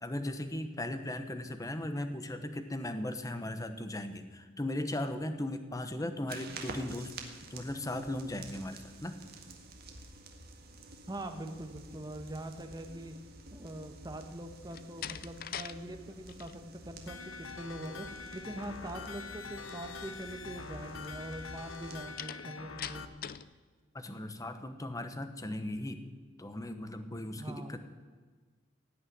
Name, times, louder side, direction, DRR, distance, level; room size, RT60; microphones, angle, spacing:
voice 1, 0.0-9.2 23.9-26.0 26.4-27.8, left 1 dB, 15° left, 9 dB, 1.0 m, -37 dB
sound 1, 6.3-22.0, right 2 dB, 50° right, 1.7 m, -50 dB
voice 2, 11.1-13.1 13.5-18.1 18.3-23.0 27.4-27.8, right 1 dB, 20° right, 6 dB, 1.2 m, -43 dB
Slam, 14.7-15.8 16.1-16.5 22.2-23.5, left 10 dB, 50° left, 0.5 m, -42 dB
sound 2, 17.1-23.1, left 4 dB, 80° left, 0.9 m, -45 dB
17.0 x 6.5 x 9.4 m, 1.4 s
head